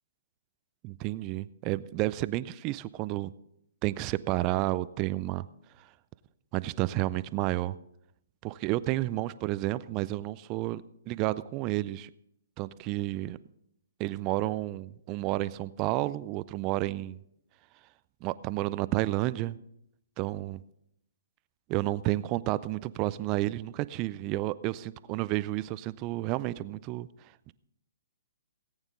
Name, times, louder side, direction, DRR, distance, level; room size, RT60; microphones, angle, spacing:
voice 1, 0.8-3.3 3.8-5.5 6.5-7.8 8.4-12.1 12.6-13.4 14.0-17.2 18.2-19.6 20.2-20.6 21.7-27.1 27.5-27.6, right 17 dB, 30° right, 17 dB, 0.4 m, -31 dB
18.0 x 9.0 x 3.9 m, 0.76 s
figure-of-eight pair, 130°, 0 cm